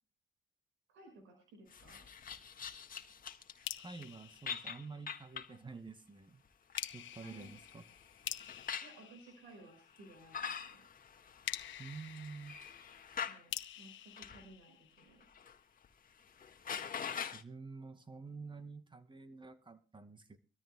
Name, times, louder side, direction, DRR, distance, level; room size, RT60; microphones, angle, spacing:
voice 1, 0.9-2.0 7.2-7.5 8.8-10.8 13.3-15.3, right 2 dB, 85° right, 5.8 m, -58 dB
sound 1, 1.7-3.7 4.0-4.1 4.5-5.6 6.5-9.0 10.0-13.4 14.2-14.4 15.0-15.6 15.8-15.9 16.3-17.4, left 7 dB, 45° left, 1.6 m, -44 dB
sound 2, 3.6-5.4 6.8-10.1 11.4-15.4, left 12 dB, 75° left, 1.3 m, -47 dB
voice 2, 3.8-6.4 6.9-7.8 11.8-12.6 17.3-20.4, right 4 dB, 25° right, 2.0 m, -49 dB
25.0 x 13.5 x 2.2 m
cardioid pair, 90°, 20 cm